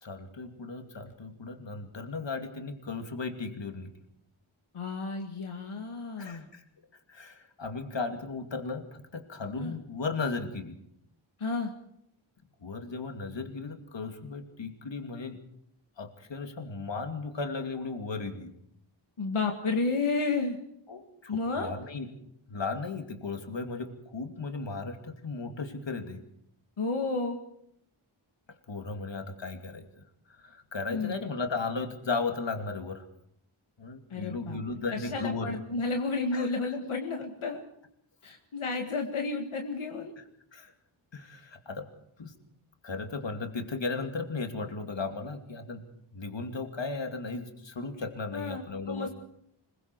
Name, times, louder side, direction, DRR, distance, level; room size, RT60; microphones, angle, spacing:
voice 1, 0.0-3.9 6.2-6.6 7.1-10.8 12.6-15.4 16.0-18.5 20.9-22.1 22.5-26.2 28.7-30.0 30.3-33.0 33.8-35.6 36.3-36.5 40.2-40.3 40.5-40.7 41.1-41.9 42.2-42.3 42.8-45.8 46.1-49.1, left 4 dB, 60° left, 5 dB, 2.6 m, -36 dB
voice 2, 4.7-6.5 9.6-9.7 11.4-11.7 19.2-20.6 21.3-21.7 26.8-27.4 30.9-31.1 34.1-34.6 34.9-37.6 38.2-40.1 48.3-49.1, left 3 dB, 80° left, 3 dB, 2.0 m, -31 dB
25.5 x 22.0 x 4.7 m, 0.72 s
wide cardioid pair, 105°, 49 cm